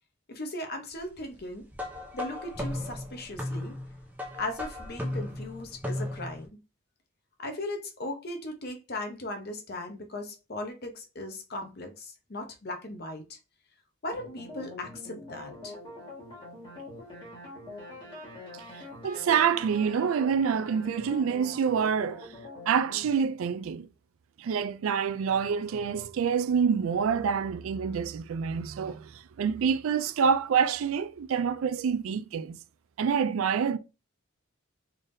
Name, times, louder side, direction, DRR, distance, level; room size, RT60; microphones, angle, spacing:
voice 1, 0.3-1.7 2.1-3.7 4.4-6.5 7.4-13.4 14.0-15.8, left 1 dB, 45° left, 0.8 m, -38 dB
sound 1, 1.7-6.5, left 1 dB, 5° right, 0.6 m, -36 dB
sound 2, 14.1-23.1, left 1 dB, 20° left, 1.7 m, -44 dB
voice 2, 18.7-22.3 22.7-23.9 24.4-32.6 33.0-33.8, right 6 dB, 75° right, 0.3 m, -27 dB
3.8 x 3.4 x 2.6 m
head